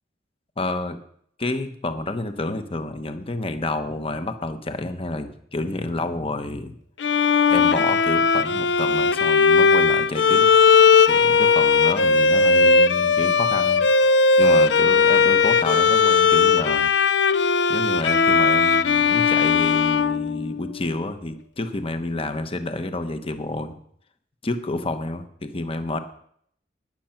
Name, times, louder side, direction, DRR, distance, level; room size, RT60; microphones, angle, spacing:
voice 1, 0.6-1.0 1.4-6.7 7.5-10.6 11.1-13.9 14.4-16.9 17.7-23.7 24.4-26.0, left 2 dB, 30° left, 8 dB, 1.1 m, -29 dB
Bowed string instrument, 7.0-20.9, left 5 dB, 80° left, 0.6 m, -18 dB
19.5 x 7.7 x 5.9 m, 0.66 s
head